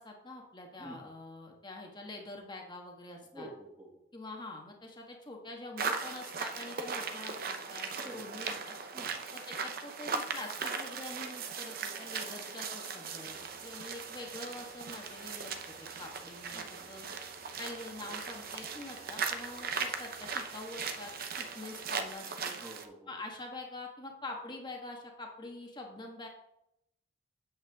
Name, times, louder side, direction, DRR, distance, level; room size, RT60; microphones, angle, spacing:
voice 1, 0.0-3.5 4.1-8.7 9.3-17.0 17.6-21.1 21.4-22.6 23.1-26.3, left 2 dB, 25° left, 1 dB, 1.5 m, -45 dB
voice 2, 3.3-3.9 8.0-8.6 8.9-9.2 16.5-17.2 22.5-23.1, right 1 dB, 10° right, -3 dB, 2.0 m, -49 dB
sound 1, 5.8-22.9, right 5 dB, 50° right, 0.7 m, -38 dB
sound 2, 13.2-22.1, left 3 dB, 60° left, 3.2 m, -61 dB
9.0 x 8.0 x 3.6 m, 0.81 s
head